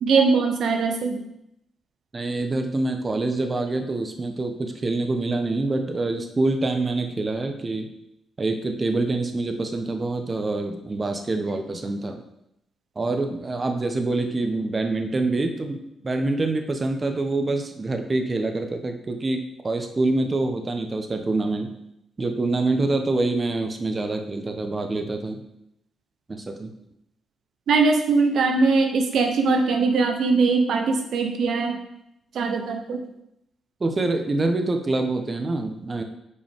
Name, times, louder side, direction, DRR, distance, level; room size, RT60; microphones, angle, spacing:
voice 1, 0.0-1.2 27.7-31.8 32.3-33.0, right 4 dB, 75° right, 4 dB, 0.9 m, -21 dB
voice 2, 2.1-7.9 8.4-12.2 13.0-21.7 22.2-25.4 26.3-26.7 33.8-36.0, right 2 dB, 35° right, 5 dB, 1.0 m, -26 dB
8.1 x 5.1 x 3.6 m, 0.80 s
cardioid pair, 70°, 0 cm